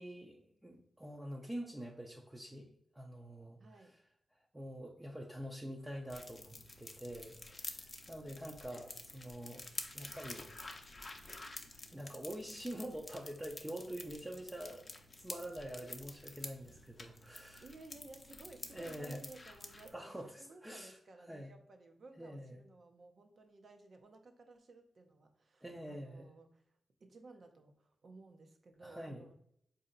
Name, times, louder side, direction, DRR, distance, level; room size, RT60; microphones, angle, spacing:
voice 1, 0.0-2.7 2.9-3.9 4.5-9.7 9.9-10.5 11.9-17.7 18.7-19.2 19.9-21.0 21.3-21.5 22.2-22.6 25.6-26.3 28.8-29.3, equal, 15° right, -1 dB, 0.6 m, -46 dB
voice 2, 3.6-4.0 17.6-29.3, right 3 dB, 60° right, 5 dB, 0.7 m, -57 dB
sound 1, 6.1-19.9, left 2 dB, 35° left, 0.6 m, -49 dB
4.2 x 2.7 x 3.8 m, 0.71 s
cardioid pair, 70°, 0 cm